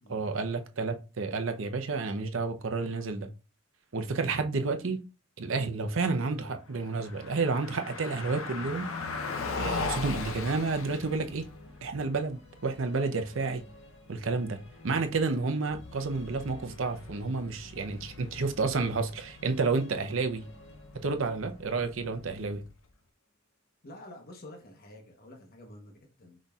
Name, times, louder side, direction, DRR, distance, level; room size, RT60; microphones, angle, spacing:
voice 1, 0.1-3.3 3.9-5.0 5.4-8.9 9.5-11.5 11.8-13.6 14.1-20.4 20.9-22.6, right 4 dB, 70° right, 0.7 m, -30 dB
Car passing by, 6.7-22.9, left 4 dB, 90° left, 0.7 m, -40 dB
Musical instrument, 7.3-22.7, left 2 dB, 75° left, 1.8 m, -56 dB
voice 2, 23.8-26.4, left 1 dB, 50° left, 0.9 m, -49 dB
5.0 x 4.1 x 2.3 m
head